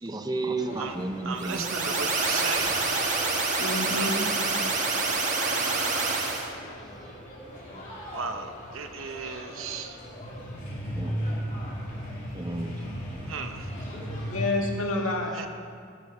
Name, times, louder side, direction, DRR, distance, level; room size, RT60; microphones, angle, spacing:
voice 1, 0.0-3.1 7.7-7.8 10.9-11.3 12.3-12.8, right 2 dB, 20° right, 6 dB, 0.6 m, -34 dB
sound 1, 0.6-14.6, equal, 40° left, 2.9 m, -38 dB
voice 2, 1.2-2.9 3.8-4.2 5.4-6.4 8.1-10.0 13.3-13.7 15.3-15.5, right 5 dB, 70° right, 7 dB, 0.8 m, -36 dB
sound 2, 1.4-6.5, right 3 dB, 35° right, 1.3 m, -27 dB
voice 3, 3.6-4.5 14.3-15.4, left 2 dB, 75° left, 0 dB, 1.8 m, -29 dB
12.5 x 7.1 x 6.2 m, 2.2 s
head